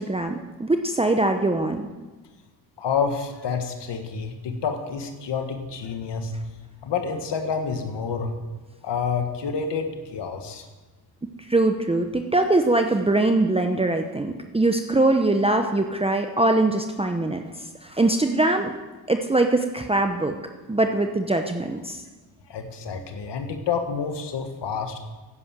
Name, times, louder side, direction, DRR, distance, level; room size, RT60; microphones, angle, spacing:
voice 1, 0.0-1.9 11.5-17.4 17.8-18.7 19.1-20.3 20.7-22.0, right 2 dB, 15° right, 5 dB, 0.9 m, -22 dB
voice 2, 2.8-6.3 6.8-8.4 8.8-10.6 22.5-25.0, left 6 dB, 75° left, 5 dB, 1.7 m, -28 dB
11.0 x 10.0 x 7.6 m, 1.3 s
cardioid pair, 80°, 42 cm